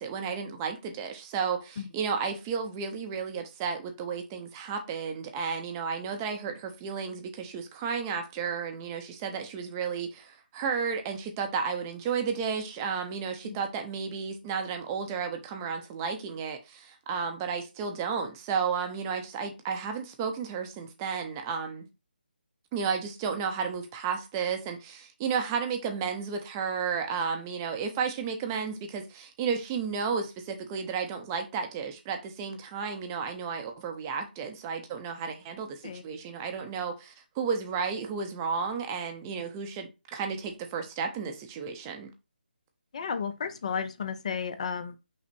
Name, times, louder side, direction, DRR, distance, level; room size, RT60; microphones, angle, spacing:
voice 1, 0.0-21.9 22.7-42.1, right 6 dB, 20° right, 0.6 m, -33 dB
voice 2, 42.9-45.0, left 6 dB, 40° left, 0.5 m, -33 dB
5.8 x 2.1 x 4.4 m
figure-of-eight pair, 160°, 6 cm